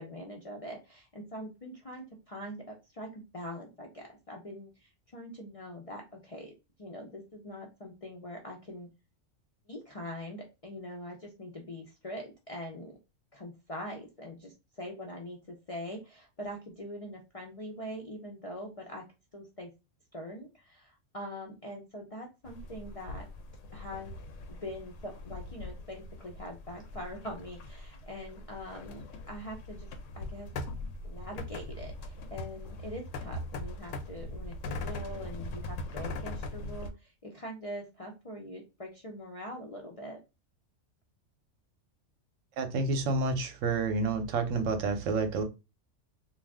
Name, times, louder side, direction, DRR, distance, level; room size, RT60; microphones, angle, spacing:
voice 1, 0.0-6.5 6.8-8.9 9.7-13.0 13.3-19.0 19.3-19.7 20.1-23.3 23.7-24.2 24.5-29.9 30.2-30.5 31.0-40.2, equal, 45° left, 0.4 m, -43 dB
sound 1, 22.4-36.9, left 2 dB, 80° left, 0.9 m, -41 dB
voice 2, 42.6-45.4, right 3 dB, 80° right, 1.0 m, -29 dB
2.5 x 2.3 x 3.3 m
omnidirectional pair, 1.3 m